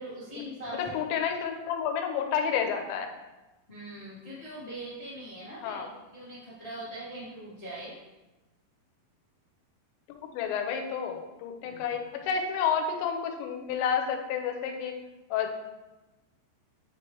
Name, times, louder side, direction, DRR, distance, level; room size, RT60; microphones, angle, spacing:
voice 1, 0.0-0.8 3.7-5.8 6.1-8.0 11.6-11.8, right 1 dB, 55° left, -9 dB, 0.4 m, -41 dB
voice 2, 0.7-3.1 5.6-5.9 10.1-14.9 15.3-15.5, left 7 dB, 90° left, 5 dB, 3.0 m, -30 dB
9.3 x 4.5 x 3.2 m, 1.1 s
omnidirectional pair, 5.1 m